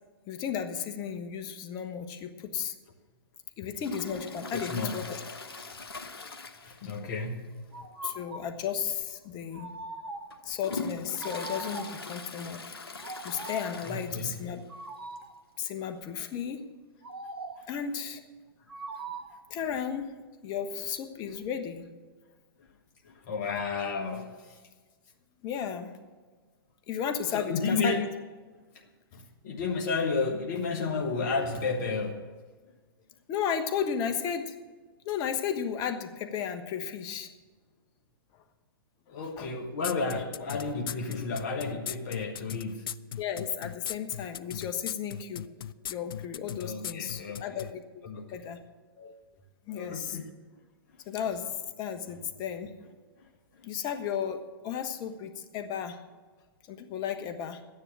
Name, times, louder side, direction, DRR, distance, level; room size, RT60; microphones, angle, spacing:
voice 1, 0.3-2.7 3.6-5.2 8.0-9.7 10.4-12.6 13.2-14.6 15.6-16.6 17.7-18.2 19.5-20.1 20.4-21.8 25.4-25.9 26.9-28.1 33.3-34.5 35.0-37.3 39.4-39.5 43.2-45.5 45.9-48.0 48.3-48.6 49.0-49.2 49.7-50.2 51.0-51.5 51.8-52.7 53.6-56.0 56.7-57.6, left 8 dB, 30° left, 7 dB, 1.2 m, -34 dB
Toilet flush, 3.8-7.2 7.5-7.6 8.1-8.2 9.0-9.1 9.7-14.6 14.9-15.0 15.2-15.3 16.3-16.4, left 3 dB, 85° left, 1.2 m, -41 dB
voice 2, 4.5-4.9 6.6-8.1 10.5-10.6 13.8-14.3 17.6-17.7 23.0-24.6 27.3-28.1 29.1-32.3 39.1-42.9 46.6-47.7 48.0-48.4 49.8-50.2 53.2-53.3, left 4 dB, 50° left, 2 dB, 1.5 m, -32 dB
sound 1, 7.7-8.6 9.5-10.4 11.2-12.1 13.0-13.8 14.7-15.4 17.0-17.8 18.7-19.5, right 2 dB, 85° right, 1.2 m, -41 dB
sound 2, 39.8-47.7, left 10 dB, 65° left, 0.4 m, -37 dB
12.5 x 10.0 x 6.2 m, 1.4 s
hypercardioid pair, 120°, 12 cm